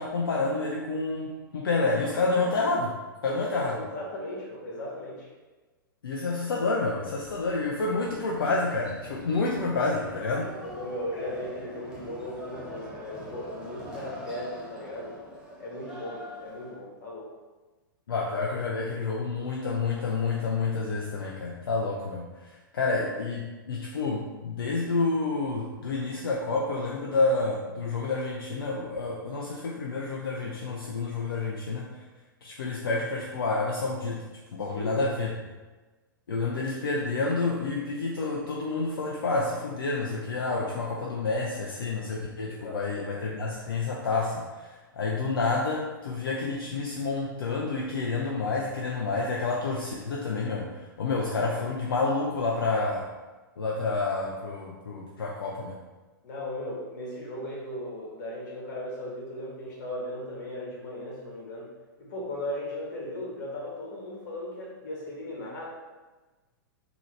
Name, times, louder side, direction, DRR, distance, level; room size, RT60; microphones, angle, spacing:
voice 1, 0.0-2.9 3.2-3.8 6.0-10.5 18.1-32.0 32.4-35.3 36.3-53.1 53.6-55.8, left 3 dB, 80° left, -2 dB, 0.5 m, -29 dB
voice 2, 3.2-5.3 10.6-15.2 15.6-17.3 34.7-35.2 42.4-42.8 51.1-51.5 56.2-61.7 62.0-65.6, left 1 dB, 55° left, -3 dB, 1.4 m, -37 dB
sound 1, 7.2-16.8, equal, 10° right, 0.8 m, -44 dB
3.8 x 2.9 x 3.2 m, 1.2 s
hypercardioid pair, 115°, 12 cm